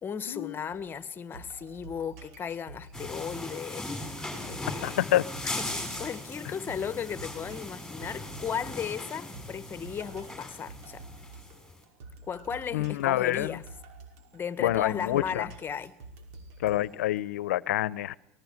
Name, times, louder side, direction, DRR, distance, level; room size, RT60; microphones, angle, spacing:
voice 1, 0.0-3.9 4.4-5.0 5.4-11.1 12.2-13.6 14.3-15.9, left 7 dB, 25° left, 1.6 m, -36 dB
sound 1, 0.7-17.2, right 3 dB, 70° right, 5.4 m, -49 dB
sound 2, 2.9-11.7, left 2 dB, 5° left, 7.7 m, -39 dB
voice 2, 4.8-5.3 12.7-13.6 14.6-15.5 16.6-18.2, left 14 dB, 85° left, 0.9 m, -27 dB
25.5 x 19.5 x 9.7 m
supercardioid pair, 105°, 8 cm